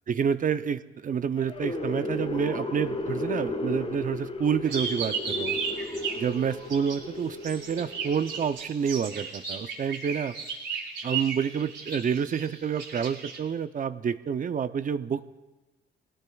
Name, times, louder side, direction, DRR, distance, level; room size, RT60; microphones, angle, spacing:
voice 1, 0.1-5.6 6.2-10.3 11.0-15.2, right 7 dB, 45° right, 12 dB, 0.6 m, -28 dB
sound 1, 1.4-8.6, left 2 dB, 30° left, 1.7 m, -34 dB
sound 2, 4.6-7.0 7.4-13.4, right 6 dB, 70° right, 5.1 m, -34 dB
24.5 x 18.0 x 2.3 m, 1.1 s
cardioid pair, 90°, 20 cm